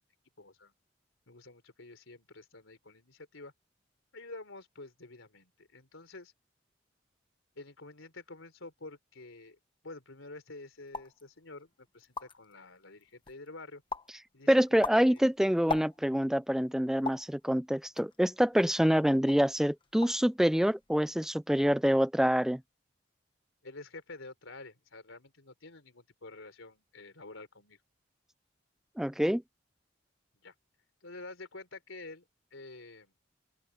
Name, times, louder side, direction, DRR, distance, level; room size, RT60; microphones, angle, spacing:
voice 1, 0.4-0.7 1.3-3.5 4.1-6.3 7.6-9.6 9.8-13.8 14.3-15.2 23.6-27.8 30.4-30.5 31.0-32.2 32.5-33.1, left 2 dB, 90° left, 3.8 m, -49 dB
sound 1, 10.9-11.2 11.7-11.8 12.0-12.5 13.0-13.5 13.9-14.2 14.6-16.3 17.0-17.3 18.0-18.9 19.3-19.5 19.8-20.3 20.5-21.0, left 3 dB, 25° left, 1.2 m, -39 dB
voice 2, 14.5-22.6 29.0-29.4, equal, ahead, 0.3 m, -26 dB
open air
head